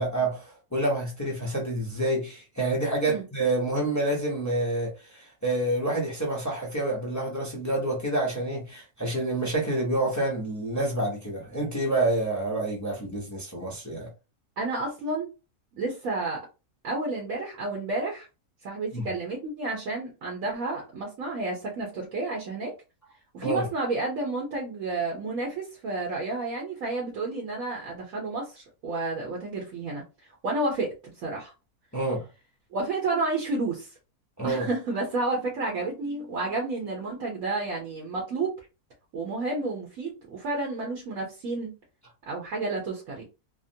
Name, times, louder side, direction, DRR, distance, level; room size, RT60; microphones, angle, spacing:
voice 1, 0.0-14.1 18.9-19.1 23.4-23.7 31.9-32.3 34.4-34.7, right 2 dB, 25° left, 0.3 m, -28 dB
voice 2, 14.6-15.3 15.8-16.4 16.8-18.3 18.6-22.7 23.3-31.5 32.7-33.9 34.4-38.5 39.1-41.7 42.3-43.2, right 3 dB, 65° right, 1.2 m, -31 dB
3.6 x 2.0 x 2.6 m
omnidirectional pair, 1.6 m